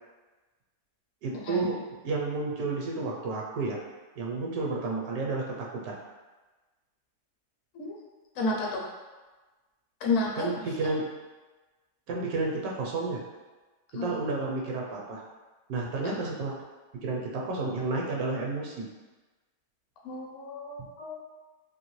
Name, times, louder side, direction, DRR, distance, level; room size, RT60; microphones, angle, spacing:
voice 1, 1.2-3.8 4.2-6.0 10.4-11.1 12.1-13.2 13.9-15.2 15.7-16.5 17.0-18.9, right 3 dB, 80° right, -2 dB, 1.1 m, -31 dB
voice 2, 8.4-8.8 10.0-10.5 13.9-14.1 16.0-16.2 20.0-21.2, left 3 dB, 65° left, -2 dB, 0.9 m, -31 dB
2.9 x 2.8 x 3.0 m, 1.2 s
omnidirectional pair, 1.6 m